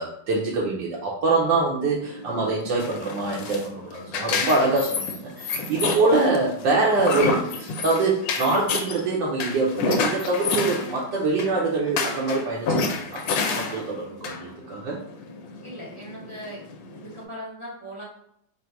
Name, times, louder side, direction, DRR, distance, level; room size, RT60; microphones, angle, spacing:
voice 1, 0.0-12.8 13.1-13.2 13.5-15.0, right 3 dB, 65° right, -5 dB, 1.3 m, -24 dB
sound 1, 2.0-17.2, left 4 dB, 75° left, 1.2 m, -29 dB
voice 2, 15.6-16.6 16.9-18.0, equal, 40° right, -7 dB, 0.4 m, -39 dB
3.9 x 2.2 x 4.4 m, 0.73 s
omnidirectional pair, 2.2 m